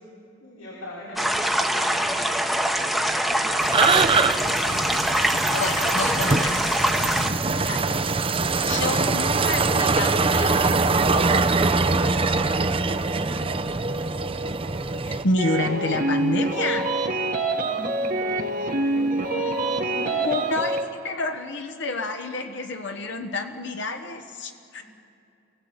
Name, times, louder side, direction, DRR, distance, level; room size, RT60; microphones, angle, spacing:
voice 1, 0.4-2.7 3.5-4.1 4.6-4.9 5.7-8.0 13.1-13.6 17.5-20.5 24.8-24.9, left 1 dB, 90° left, -6 dB, 5.5 m, -39 dB
sound 1, 1.2-7.3, equal, ahead, 1.0 m, -24 dB
voice 2, 3.4-3.7 5.5-6.5 7.7-7.9 8.7-11.4 15.1-17.0 20.2-20.8 21.0-24.8, left 2 dB, 60° left, 4 dB, 1.1 m, -29 dB
sound 2, 3.6-15.2, right 3 dB, 25° right, 0.6 m, -23 dB
sound 3, 15.4-20.8, right 2 dB, 45° right, 1.3 m, -25 dB
29.0 x 17.0 x 8.1 m, 2.6 s
head